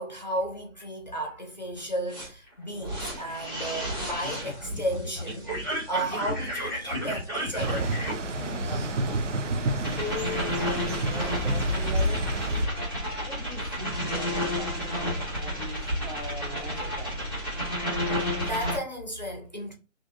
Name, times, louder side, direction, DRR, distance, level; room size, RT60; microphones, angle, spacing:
voice 1, 0.0-7.9 18.1-19.7, right 1 dB, 35° left, 0.6 m, -34 dB
sound 1, 1.8-1.9 2.1-18.8, equal, 20° right, 1.0 m, -32 dB
sound 2, 7.5-12.6, right 1 dB, 65° right, 0.6 m, -29 dB
voice 2, 9.7-12.2 13.2-17.3, left 2 dB, 50° right, 1.1 m, -40 dB
3.0 x 2.5 x 2.5 m
figure-of-eight pair, 175°, 39 cm